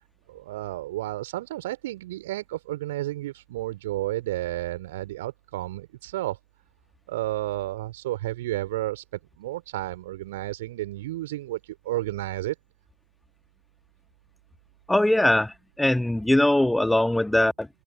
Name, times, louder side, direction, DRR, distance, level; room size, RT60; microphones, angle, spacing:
voice 1, 0.3-6.4 7.1-9.0 9.4-12.5, right 16 dB, 60° right, 3.3 m, -32 dB
voice 2, 14.9-17.7, left 1 dB, 5° left, 2.0 m, -21 dB
figure-of-eight pair, 75°, 0 cm